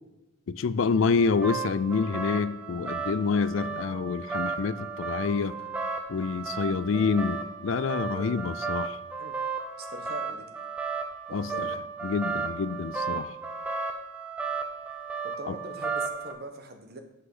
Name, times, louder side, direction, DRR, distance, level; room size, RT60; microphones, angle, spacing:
voice 1, 0.5-5.5 6.1-9.0 11.3-11.7 12.0-13.3 15.5-15.6, left 5 dB, 65° left, 15 dB, 0.4 m, -27 dB
sound 1, 1.0-16.3, right 5 dB, 5° right, 0.8 m, -34 dB
voice 2, 6.9-7.2 8.0-8.3 9.2-9.4 9.8-10.4 11.3-11.7 15.4-17.0, right 2 dB, 50° right, 5 dB, 1.2 m, -41 dB
8.0 x 5.8 x 4.9 m, 0.96 s
head